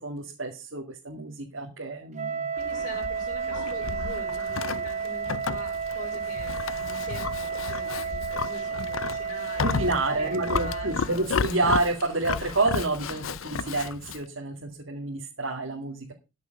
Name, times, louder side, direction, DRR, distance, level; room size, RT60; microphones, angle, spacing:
voice 1, 0.0-2.5 9.6-16.1, right 2 dB, 70° right, 0 dB, 2.2 m, -29 dB
Wind instrument woodwind instrument, 2.1-11.0, right 6 dB, 35° right, 1.1 m, -32 dB
voice 2, 2.5-11.3, left 2 dB, 50° left, -5 dB, 4.8 m, -43 dB
Livestock farm animals working animals, 2.6-14.2, left 5 dB, 80° left, 0.6 m, -33 dB
13.5 x 7.0 x 5.2 m, 0.29 s
head